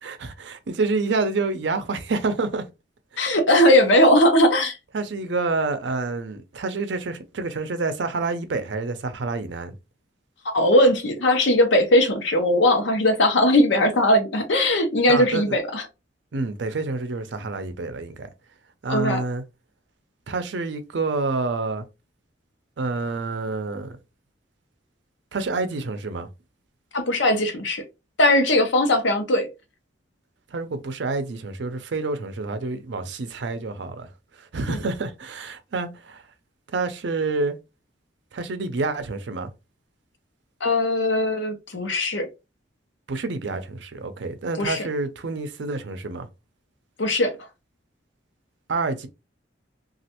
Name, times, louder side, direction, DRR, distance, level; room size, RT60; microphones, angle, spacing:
voice 1, 0.0-2.6 3.1-3.3 4.9-9.8 15.1-15.6 16.3-18.3 18.8-19.4 20.3-21.8 22.8-24.0 25.3-26.3 30.5-34.1 34.4-36.2 36.7-37.6 38.3-39.5 43.1-46.3 48.7-49.1, right 3 dB, 70° right, 0.5 m, -28 dB
voice 2, 3.2-4.8 10.4-15.8 18.9-19.2 26.9-27.8 28.2-29.5 34.7-34.8 40.6-42.3 44.6-44.9 47.0-47.3, left 1 dB, 75° left, 0.7 m, -19 dB
3.1 x 2.4 x 2.9 m
head